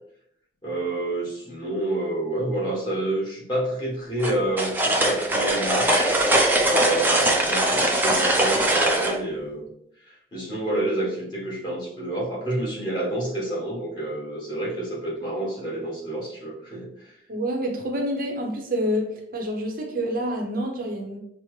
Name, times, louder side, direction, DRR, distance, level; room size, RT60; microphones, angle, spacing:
voice 1, 0.6-6.1 6.6-9.7 10.0-17.1, right 1 dB, 25° left, -5 dB, 1.3 m, -28 dB
sound 1, 4.2-9.2, right 1 dB, 10° right, 0.4 m, -21 dB
voice 2, 17.3-19.1 19.3-21.2, equal, 50° right, 2 dB, 0.6 m, -27 dB
5.6 x 2.0 x 3.1 m, 0.74 s
head